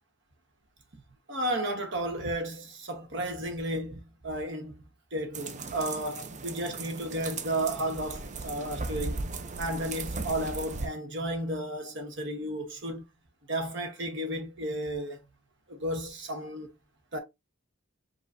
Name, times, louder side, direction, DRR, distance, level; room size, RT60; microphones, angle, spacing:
voice 1, 1.3-4.8 5.1-9.3 9.6-13.0 13.5-15.2 15.7-16.7 17.1-17.2, right 1 dB, 55° right, 1.2 m, -33 dB
sound 1, 5.3-10.9, right 3 dB, 35° right, 0.5 m, -37 dB
5.2 x 3.0 x 2.6 m
head